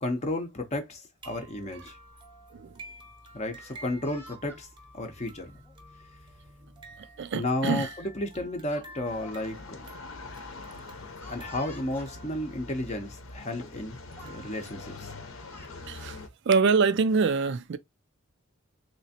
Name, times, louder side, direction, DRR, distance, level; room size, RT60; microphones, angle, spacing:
voice 1, 0.0-2.0 3.3-4.7 4.9-5.5 7.3-9.9 11.3-14.0 14.2-15.1, left 1 dB, 30° left, 0.6 m, -33 dB
sound 1, 1.2-15.5, right 1 dB, 20° right, 0.7 m, -51 dB
Speech, 3.5-4.6 5.5-5.8 7.0-7.1 7.5-7.7 8.7-9.5 9.8-9.9 11.2-12.1 13.0-13.1 13.5-13.9 14.2-14.4 15.2-15.8, left 2 dB, 10° left, 1.0 m, -51 dB
voice 2, 7.0-7.9 15.9-16.2 16.5-17.8, right 5 dB, 55° right, 0.4 m, -25 dB
sound 2, 9.0-16.3, left 3 dB, 70° left, 0.8 m, -44 dB
3.3 x 2.9 x 2.8 m
head